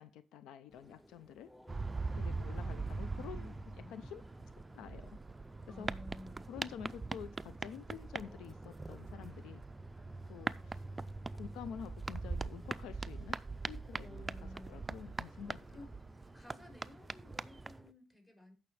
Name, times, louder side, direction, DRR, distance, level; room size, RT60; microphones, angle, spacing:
voice 1, 0.0-1.5 2.1-4.2 4.7-5.2 5.8-5.9 6.5-9.6 10.3-10.8 11.3-13.4 13.7-14.3 14.7-15.6, left 9 dB, 90° left, 0.4 m, -49 dB
sound 1, 0.7-17.9, left 1 dB, 5° left, 0.7 m, -60 dB
sound 2, 1.7-17.8, right 3 dB, 20° right, 0.4 m, -42 dB
voice 2, 5.6-6.5 14.0-14.8 15.3-15.4 15.7-15.9 16.3-18.5, left 1 dB, 20° left, 4.5 m, -54 dB
15.5 x 5.9 x 3.3 m
cardioid pair, 90°, 0 cm